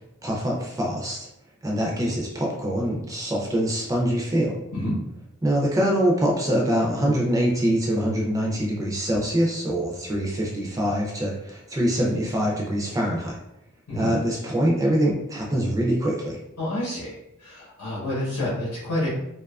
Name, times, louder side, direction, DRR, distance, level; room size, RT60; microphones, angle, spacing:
voice 1, 0.2-1.3 1.6-4.6 5.4-13.4 13.9-16.4, equal, 15° right, -2 dB, 0.3 m, -24 dB
voice 2, 16.6-17.2 17.4-19.1, left 1 dB, 80° left, -7 dB, 0.8 m, -28 dB
2.6 x 2.3 x 2.3 m, 0.84 s
head